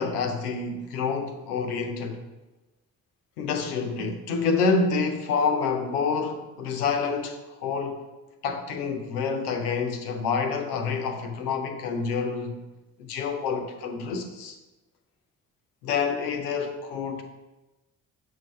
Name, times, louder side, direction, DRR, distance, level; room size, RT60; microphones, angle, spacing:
voice 1, 0.0-2.2 3.4-8.0 8.4-12.6 13.0-14.6 15.8-17.2, left 5 dB, 85° left, 0.7 m, -28 dB
7.4 x 4.7 x 3.1 m
hypercardioid pair, 45°, 44 cm